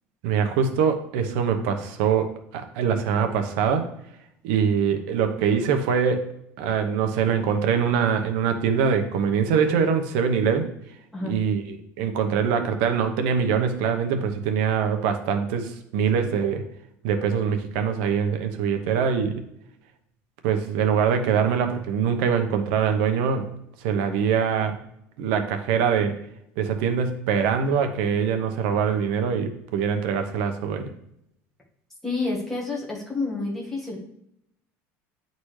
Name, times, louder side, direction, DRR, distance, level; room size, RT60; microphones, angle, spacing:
voice 1, 0.2-3.9 4.4-6.2 6.6-10.7 11.2-16.6 17.0-19.3 20.4-23.5 23.8-24.8 25.2-26.1 26.6-30.9, right 7 dB, 75° right, 6 dB, 1.0 m, -23 dB
voice 2, 32.0-34.0, left 3 dB, 5° left, -4 dB, 1.6 m, -29 dB
9.9 x 4.0 x 3.2 m, 0.76 s
cardioid pair, 170°, 6 cm